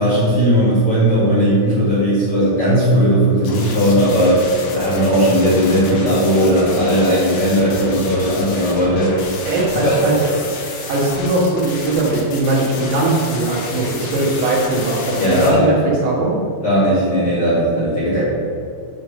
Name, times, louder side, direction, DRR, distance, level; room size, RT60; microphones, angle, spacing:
voice 1, 0.0-4.4 4.7-9.1 9.8-10.0 15.2-15.7 16.6-18.2, equal, 60° left, -10 dB, 1.5 m, -16 dB
sound 1, 3.4-15.5, left 3 dB, 75° left, 3.4 m, -30 dB
voice 2, 9.5-10.3 10.9-16.4, right 2 dB, 80° right, -4 dB, 3.8 m, -19 dB
8.9 x 3.4 x 6.5 m, 2.4 s
omnidirectional pair, 5.3 m